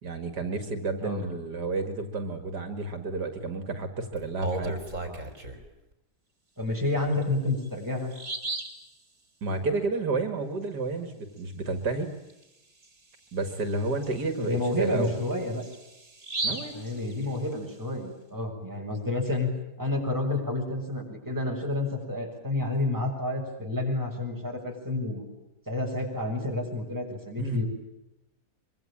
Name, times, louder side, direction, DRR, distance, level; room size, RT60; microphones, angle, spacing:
voice 1, 0.0-4.8 9.4-12.1 13.3-15.1 16.4-16.7 27.4-27.6, right 3 dB, 75° right, 8 dB, 2.8 m, -31 dB
Bird vocalization bird call bird song, 4.2-5.7 7.1-7.2 7.7-7.8 8.1-8.8 12.3-12.4 12.8-12.9 13.5-17.7, right 2 dB, 45° right, 4.4 m, -36 dB
voice 2, 6.6-8.1 14.4-15.6 16.7-19.5 19.8-25.2 25.7-27.7, left 2 dB, 10° right, 0 dB, 6.8 m, -29 dB
24.5 x 24.5 x 8.9 m, 0.93 s
omnidirectional pair, 1.8 m